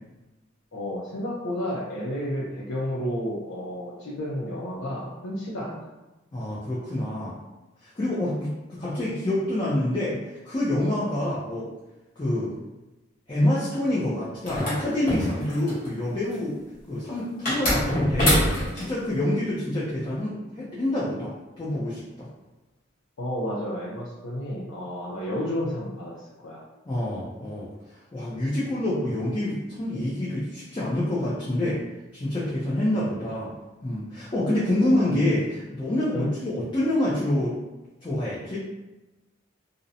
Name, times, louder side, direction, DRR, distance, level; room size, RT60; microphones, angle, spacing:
voice 1, 0.7-5.9 23.2-26.6 34.2-34.3 34.7-35.0 36.1-36.3, equal, 90° left, -7 dB, 0.5 m, -31 dB
voice 2, 6.3-7.4 7.8-11.7 12.2-12.5 13.3-16.6 16.9-18.4 18.7-22.3 26.9-27.7 28.1-31.8 32.1-33.5 33.8-37.6 38.0-38.6, left 1 dB, 25° left, -8 dB, 0.4 m, -27 dB
sound 1, 14.4-15.9 17.5-18.9, equal, 45° left, 1.0 m, -24 dB
2.5 x 2.0 x 2.7 m, 1.1 s
head